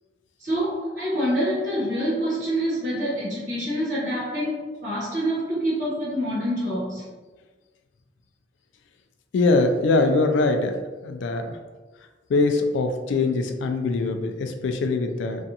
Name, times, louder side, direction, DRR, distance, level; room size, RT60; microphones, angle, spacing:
voice 1, 0.4-7.0, equal, 55° right, -10 dB, 0.9 m, -26 dB
voice 2, 9.3-10.8 11.0-11.5 12.3-15.4, left 3 dB, 85° left, 6 dB, 0.3 m, -22 dB
2.5 x 2.2 x 2.7 m, 1.3 s
head